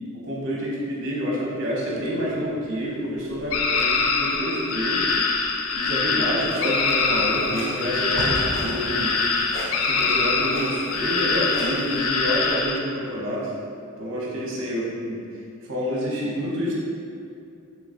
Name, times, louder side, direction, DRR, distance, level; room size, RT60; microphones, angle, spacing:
voice 1, 0.1-5.0 5.7-9.2 9.8-13.5 14.0-15.2 15.7-16.7, equal, 60° right, -4 dB, 0.8 m, -28 dB
sound 1, 1.9-4.6 4.9-5.3 5.6-10.9 11.7-11.9, right 1 dB, 90° right, 0.5 m, -38 dB
sound 2, 3.5-12.8, left 4 dB, 70° left, 0.3 m, -24 dB
Clock, 6.5-12.0, equal, 30° left, 0.9 m, -39 dB
3.8 x 3.2 x 2.5 m, 2.5 s
head